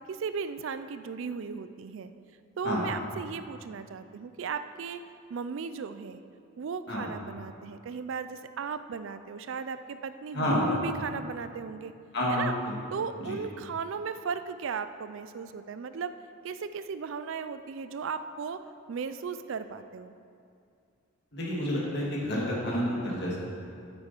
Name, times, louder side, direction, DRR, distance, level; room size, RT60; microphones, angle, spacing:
voice 1, 0.0-2.1 2.6-5.0 5.3-6.2 6.6-11.9 12.3-12.5 12.9-16.1 16.4-18.6 18.9-20.1, right 5 dB, 65° right, 11 dB, 0.4 m, -36 dB
voice 2, 10.3-10.7 12.1-12.5 13.3-13.4 21.3-23.4, equal, 55° left, -5 dB, 2.5 m, -29 dB
8.7 x 8.7 x 4.5 m, 2.4 s
head